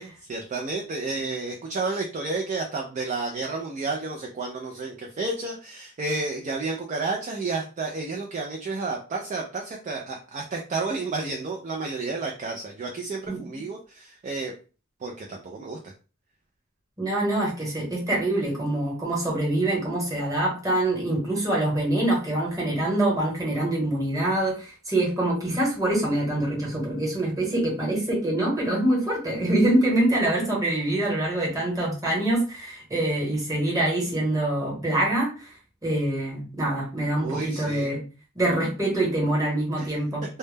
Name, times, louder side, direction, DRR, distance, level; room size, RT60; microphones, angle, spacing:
voice 1, 0.0-14.5 15.0-15.8 37.2-37.9 39.8-39.9, right 3 dB, 35° right, 1 dB, 0.3 m, -31 dB
voice 2, 17.0-35.5 35.8-38.0 38.3-40.2, right 1 dB, 15° right, -4 dB, 1.0 m, -25 dB
2.1 x 2.0 x 3.2 m, 0.35 s
head